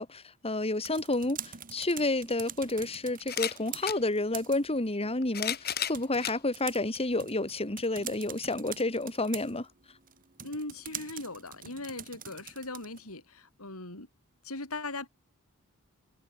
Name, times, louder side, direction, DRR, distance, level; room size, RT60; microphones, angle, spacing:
voice 1, 0.0-9.7, left 2 dB, 30° left, 2.7 m, -30 dB
sound 1, 0.6-13.1, right 9 dB, 40° right, 3.6 m, -46 dB
sound 2, 1.8-1.9 3.2-4.0 5.0-6.4 7.1-7.2 8.5-8.6, left 9 dB, 45° left, 5.4 m, -33 dB
voice 2, 10.4-14.1 14.4-15.1, left 2 dB, 90° left, 6.8 m, -39 dB
head